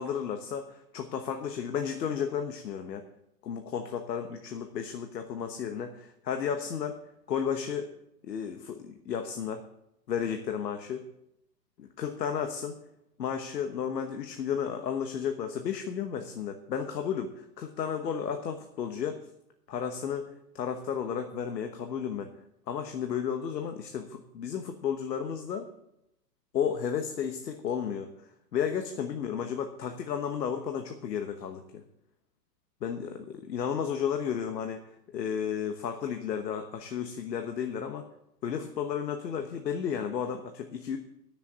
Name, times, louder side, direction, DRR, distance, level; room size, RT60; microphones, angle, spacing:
voice 1, 0.0-3.0 3.4-7.0 7.3-7.9 8.2-9.6 10.1-11.0 11.8-12.8 13.2-19.2 19.7-22.3 22.7-25.7 26.5-31.8 32.8-34.8 35.1-38.0 38.4-41.0, left 7 dB, 80° left, 6 dB, 1.3 m, -33 dB
10.5 x 7.0 x 8.4 m, 0.81 s
hypercardioid pair, 165°, 49 cm